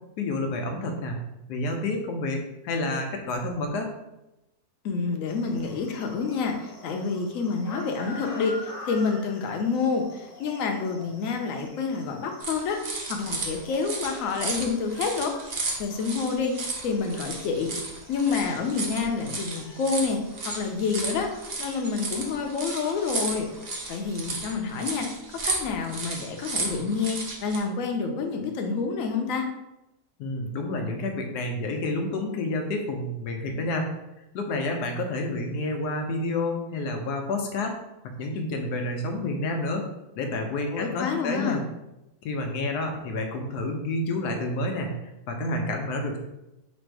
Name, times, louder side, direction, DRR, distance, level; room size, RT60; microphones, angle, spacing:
voice 1, 0.2-1.2 1.5-3.9 30.2-33.9 34.3-37.7 38.2-39.8 40.1-41.6 42.2-44.9 45.3-46.2, left 2 dB, 90° left, 3 dB, 1.3 m, -29 dB
voice 2, 4.8-15.3 15.8-17.7 18.1-21.3 21.6-23.5 23.9-25.1 25.4-29.5 40.7-41.6, left 5 dB, 65° left, 3 dB, 1.0 m, -28 dB
sound 1, 5.3-24.3, left 1 dB, 30° left, 0.8 m, -47 dB
sound 2, 12.4-27.6, right 3 dB, 45° right, 0.5 m, -34 dB
4.1 x 2.6 x 4.6 m, 0.93 s
omnidirectional pair, 1.7 m